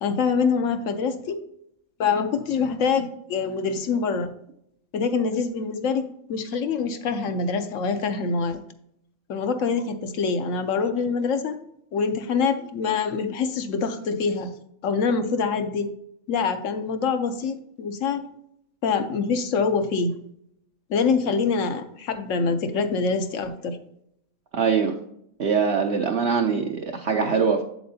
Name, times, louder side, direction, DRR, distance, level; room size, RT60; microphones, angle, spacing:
voice 1, 0.0-1.4 2.0-4.3 4.9-6.0 6.3-8.6 9.3-11.6 11.9-14.5 14.8-15.9 16.3-18.3 18.8-20.1 20.9-23.8, left 5 dB, 70° left, 8 dB, 1.0 m, -25 dB
voice 2, 24.5-24.9 25.4-27.6, right 6 dB, 60° right, 2 dB, 0.8 m, -22 dB
7.7 x 7.5 x 2.7 m, 0.74 s
omnidirectional pair, 1.5 m